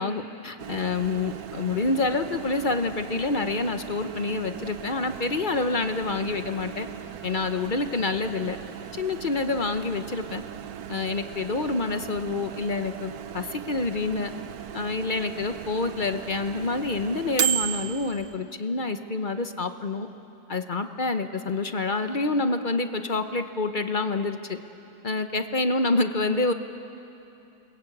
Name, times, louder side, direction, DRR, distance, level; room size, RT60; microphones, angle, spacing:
voice 1, 0.0-6.9 7.2-8.6 8.9-10.4 10.9-14.3 14.7-20.1 20.5-24.6 25.0-26.5, left 3 dB, 40° left, 8 dB, 0.8 m, -27 dB
Microwave oven, 0.6-18.4, right 10 dB, 65° right, 1.2 m, -36 dB
29.0 x 21.5 x 8.5 m, 2.8 s
omnidirectional pair, 1.8 m